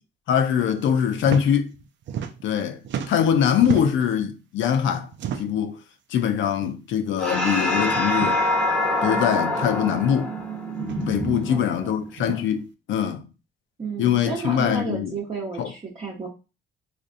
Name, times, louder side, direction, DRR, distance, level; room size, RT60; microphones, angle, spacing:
voice 1, 0.3-1.8 2.4-5.1 5.4-5.8 6.1-8.4 9.0-10.3 11.1-13.2 14.0-15.2 15.6-15.7, left 9 dB, 75° left, 0.6 m, -23 dB
sound 1, 1.2-1.4 1.7-2.6 2.8-4.1 5.1-5.7 6.6-6.8 7.1-7.2 8.1-8.4 9.5-9.6 10.8-11.1 12.1-12.4, right 8 dB, 65° right, 0.5 m, -32 dB
sound 2, 7.2-12.0, left 1 dB, 5° left, 1.0 m, -25 dB
voice 2, 9.0-9.5 11.4-11.9 13.8-16.3, right 4 dB, 30° right, 0.9 m, -32 dB
3.8 x 2.6 x 2.5 m
cardioid pair, 90°, 20 cm